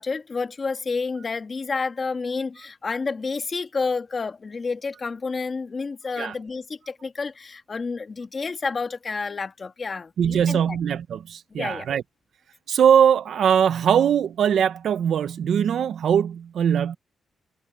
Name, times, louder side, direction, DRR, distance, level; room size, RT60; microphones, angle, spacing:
voice 1, 0.0-10.8 11.5-11.9, left 4 dB, 35° left, 1.9 m, -30 dB
voice 2, 10.2-12.0 12.7-17.0, right 8 dB, 70° right, 0.7 m, -21 dB
cardioid pair, 120°, 0 cm